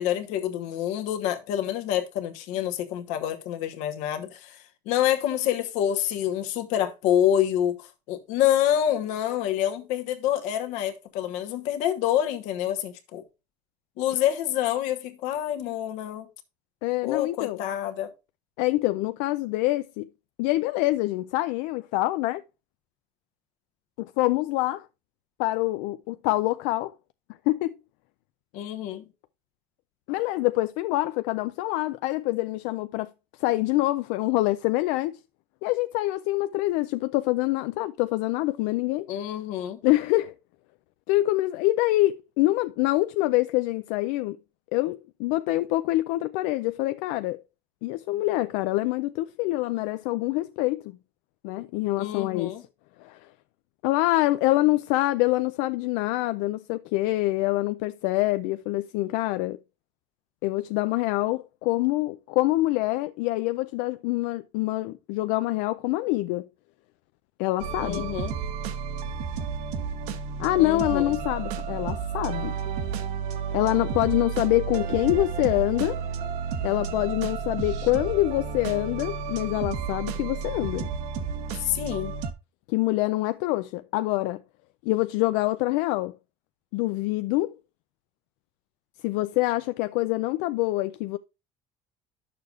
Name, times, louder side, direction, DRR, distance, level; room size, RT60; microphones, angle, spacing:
voice 1, 0.0-13.2 14.0-16.3 17.0-18.1 28.5-29.0 39.1-39.8 52.0-52.6 67.8-68.3 70.6-71.1 81.6-82.1, left 11 dB, 70° left, 1.1 m, -27 dB
voice 2, 16.8-17.6 18.6-20.1 20.4-22.4 24.0-24.9 25.4-26.9 27.5-27.8 30.1-33.1 33.4-35.2 35.6-39.1 39.8-40.3 41.1-44.4 44.7-47.4 47.8-51.0 51.4-52.5 53.0-53.2 53.8-59.6 60.4-66.4 67.4-68.1 70.4-72.6 73.5-76.0 76.6-80.9 82.7-84.4 84.8-86.1 86.7-87.5 89.0-91.2, left 18 dB, 85° left, 0.4 m, -25 dB
sound 1, 67.6-82.3, right 6 dB, 65° right, 0.9 m, -32 dB
10.5 x 6.8 x 2.4 m
cardioid pair, 180°, 13 cm